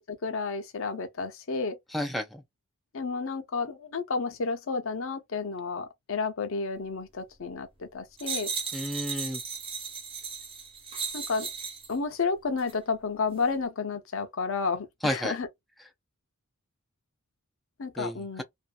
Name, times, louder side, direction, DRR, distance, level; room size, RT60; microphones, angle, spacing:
voice 1, 0.1-1.8 2.9-8.5 11.1-11.5 11.9-15.5 17.8-18.4, left 4 dB, 65° left, 0.7 m, -31 dB
voice 2, 1.9-2.4 8.7-9.4 15.0-15.4 18.0-18.4, equal, ahead, 0.4 m, -31 dB
sound 1, 8.2-11.9 12.6-12.8, right 5 dB, 25° right, 0.8 m, -36 dB
2.7 x 2.4 x 2.2 m
head